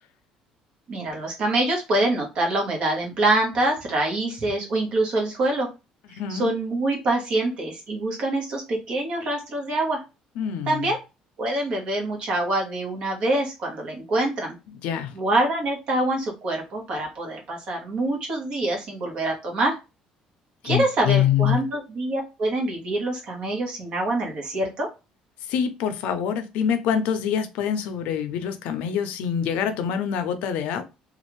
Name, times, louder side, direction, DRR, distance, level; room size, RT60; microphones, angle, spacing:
voice 1, 0.9-5.7 6.3-10.0 10.7-11.0 11.4-14.5 15.1-19.8 20.6-24.9, right 2 dB, 45° right, 1.2 m, -25 dB
voice 2, 6.2-6.5 10.4-10.9 14.8-15.1 20.6-21.6 25.5-30.8, left 8 dB, 75° left, 0.5 m, -25 dB
3.2 x 2.4 x 3.1 m
cardioid pair, 165°, 2 cm